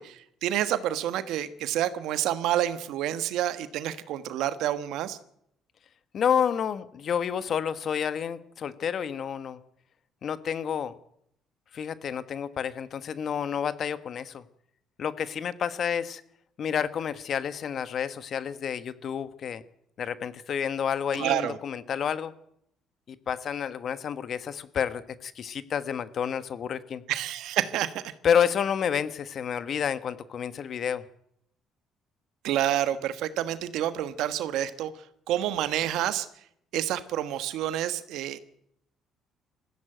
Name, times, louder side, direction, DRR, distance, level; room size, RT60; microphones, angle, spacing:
voice 1, 0.0-5.2 21.1-21.6 27.1-28.0 32.4-34.9 35.3-36.3 36.7-38.4, right 12 dB, 80° right, 12 dB, 1.3 m, -28 dB
voice 2, 6.1-9.6 10.2-10.9 11.7-14.4 15.0-16.2 16.6-19.6 20.0-22.3 23.1-27.0 28.2-31.0, left 8 dB, 55° left, 13 dB, 1.3 m, -29 dB
20.5 x 15.0 x 9.1 m, 0.74 s
supercardioid pair, 75°, 0 cm